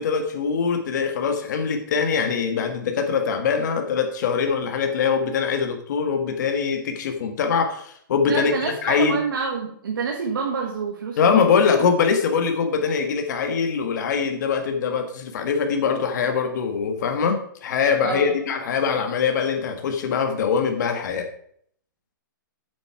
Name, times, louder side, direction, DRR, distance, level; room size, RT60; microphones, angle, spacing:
voice 1, 0.0-8.5 8.8-9.2 11.2-21.3, left 6 dB, 55° left, 5 dB, 1.6 m, -23 dB
voice 2, 8.3-11.5 11.8-11.9 18.0-18.3, right 5 dB, 80° right, 0 dB, 1.9 m, -28 dB
8.3 x 7.5 x 4.7 m, 0.63 s
hypercardioid pair, 155°, 11 cm